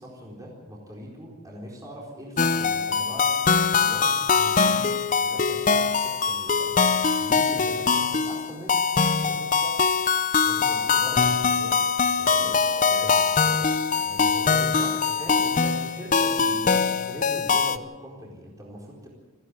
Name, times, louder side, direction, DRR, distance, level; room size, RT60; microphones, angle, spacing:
voice 1, 0.0-4.9 5.2-9.8 10.4-12.6 14.4-19.1, equal, 15° right, -3 dB, 4.2 m, -41 dB
sound 1, 2.4-17.8, left 5 dB, 40° left, 0.7 m, -22 dB
voice 2, 12.2-14.6 15.0-15.4 16.0-16.2, right 1 dB, 70° right, 2 dB, 6.8 m, -42 dB
29.5 x 10.0 x 9.8 m, 1.3 s
head